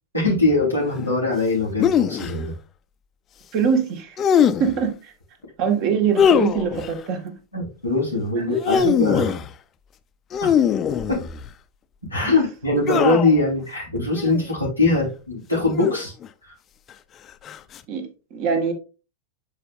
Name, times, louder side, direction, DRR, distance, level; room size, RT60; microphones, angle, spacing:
voice 1, 0.1-2.5 7.5-9.4 10.4-10.5 11.1-11.2 12.1-16.1 16.4-16.5, left 2 dB, 90° right, 4.0 m, -22 dB
sound 1, 1.8-2.3 4.2-4.8 6.2-6.9 8.4-9.5 10.3-11.5 12.9-13.4 14.1-14.4 15.7-16.3 17.5-17.8, left 8 dB, 25° left, 0.5 m, -21 dB
voice 2, 3.5-4.2 4.6-5.0 5.6-7.4 8.7-8.8 17.9-18.7, right 6 dB, 40° right, 1.7 m, -23 dB
10.5 x 5.0 x 2.5 m
figure-of-eight pair, 90°, 0 cm